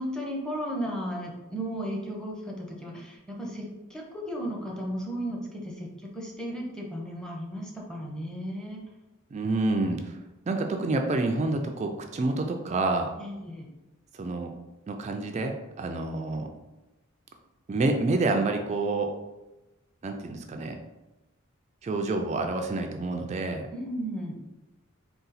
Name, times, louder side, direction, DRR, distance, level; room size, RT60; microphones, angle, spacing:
voice 1, 0.0-8.8 13.2-13.7 23.7-24.4, equal, 5° left, -2 dB, 0.6 m, -35 dB
voice 2, 9.3-10.2 10.5-13.1 14.1-14.5 14.9-16.5 17.7-19.1 20.0-20.8 21.8-23.7, right 2 dB, 35° right, 4 dB, 0.3 m, -28 dB
3.8 x 2.3 x 4.0 m, 1.0 s
head